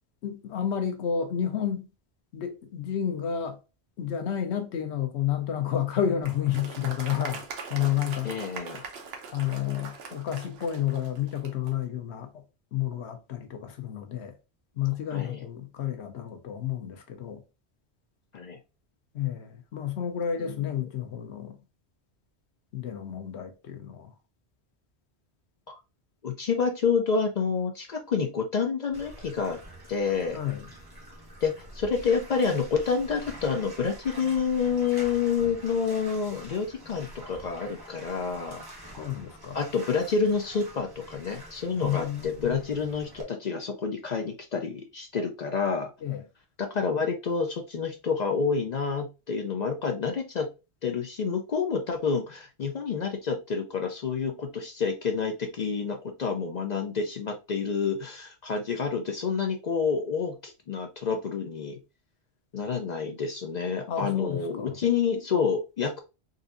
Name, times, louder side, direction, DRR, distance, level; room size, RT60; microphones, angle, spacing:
voice 1, 0.2-1.8 2.3-3.6 4.0-8.3 9.3-12.3 12.7-14.3 14.8-17.4 19.1-21.6 22.7-24.1 30.3-30.6 39.0-39.6 41.8-42.6 46.0-46.2 63.9-64.8, left 9 dB, 85° left, 1.0 m, -30 dB
Applause, 6.2-11.8, right 5 dB, 70° right, 0.9 m, -41 dB
voice 2, 8.2-8.9 15.1-15.4 18.3-18.6 20.4-20.7 25.7-25.8 26.2-29.6 29.9-30.4 31.4-38.6 39.5-45.9 46.6-50.5 50.8-61.8 62.5-66.0, left 5 dB, 55° left, 0.5 m, -28 dB
Bathtub (filling or washing), 28.9-43.2, right 1 dB, 25° right, 0.9 m, -46 dB
3.9 x 2.5 x 2.5 m
omnidirectional pair, 1.1 m